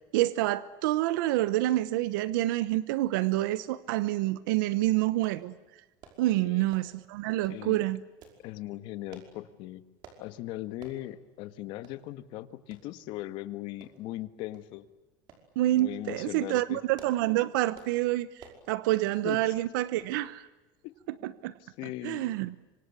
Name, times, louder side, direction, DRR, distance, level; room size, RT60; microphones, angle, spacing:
voice 1, 0.1-5.5 6.2-8.0 15.6-20.5 21.2-21.5 22.0-22.5, right 16 dB, 80° right, 17 dB, 1.0 m, -27 dB
sound 1, 5.2-5.4 6.0-6.2 6.7-7.0 7.4-7.6 8.2-8.4 9.1-9.3 10.0-10.2 10.8-11.0 11.4-11.5 11.8-12.0 12.7-12.9 13.8-14.2 14.5-14.7 15.3-15.5 15.9-16.3 16.8-17.3 17.7-18.0 18.4-18.6 19.3-19.5 20.0-20.2 20.5-20.6, right 7 dB, 45° right, 5.4 m, -52 dB
voice 2, 6.3-6.7 7.5-7.8 8.4-9.8 10.2-14.9 15.8-16.8 19.2-19.5 20.8-20.9 21.2-21.3 21.6-22.3, left 15 dB, 50° left, 13 dB, 1.6 m, -39 dB
27.0 x 25.5 x 8.3 m, 1.1 s
cardioid pair, 165°, 11 cm